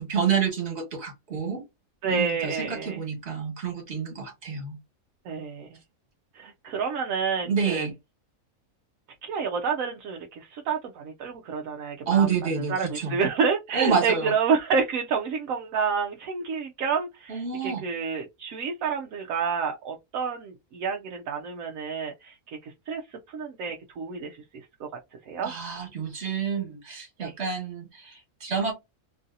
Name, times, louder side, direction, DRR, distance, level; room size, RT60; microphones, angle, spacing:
voice 1, 0.0-1.6 2.0-4.8 7.4-7.9 12.1-13.2 13.7-14.3 17.3-17.8 25.4-28.7, right 6 dB, 50° right, 1.6 m, -28 dB
voice 2, 2.0-3.0 5.3-5.7 6.3-7.9 9.2-12.3 12.6-23.0 23.3-24.9 25.3-25.5 27.2-27.3, right 5 dB, 75° right, 1.0 m, -29 dB
3.0 x 2.7 x 2.4 m
omnidirectional pair, 1.5 m